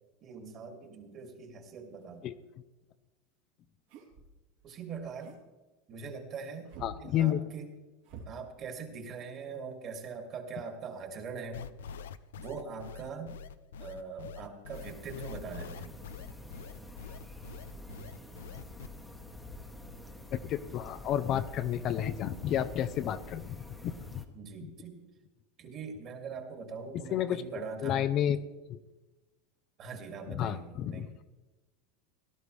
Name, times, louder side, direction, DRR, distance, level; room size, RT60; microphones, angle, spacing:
voice 1, 0.2-2.3 4.6-5.4 5.9-6.7 7.0-7.7 8.3-11.6 12.4-13.4 13.8-15.9 24.3-25.0 25.6-28.1 29.8-31.1, right 5 dB, 40° right, 4 dB, 2.5 m, -42 dB
sound 1, 3.9-4.4 4.9-5.4 6.7-7.0 8.0-8.3, right 4 dB, 70° right, 3.0 m, -47 dB
voice 2, 6.8-7.4 20.3-23.6 23.8-24.2 24.6-24.7 27.1-27.4 27.8-28.4 28.7-28.8 30.3-31.1, left 10 dB, 45° left, 11 dB, 0.6 m, -31 dB
sound 2, 11.5-18.9, left 6 dB, 90° left, 0.5 m, -45 dB
sound 3, 14.7-24.2, left 1 dB, 5° left, 1.2 m, -48 dB
18.0 x 12.0 x 3.3 m, 1.1 s
supercardioid pair, 125°, 0 cm